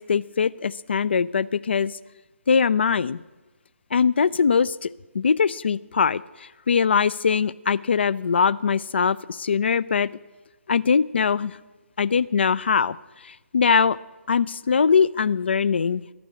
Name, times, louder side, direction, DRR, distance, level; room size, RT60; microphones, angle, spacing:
voice 1, 0.0-2.0 2.5-3.2 3.9-10.1 10.7-11.6 12.0-13.0 13.2-14.0 14.3-16.1, left 6 dB, 50° left, 19 dB, 0.3 m, -22 dB
13.0 x 6.0 x 8.1 m, 1.2 s
figure-of-eight pair, 140°, 8 cm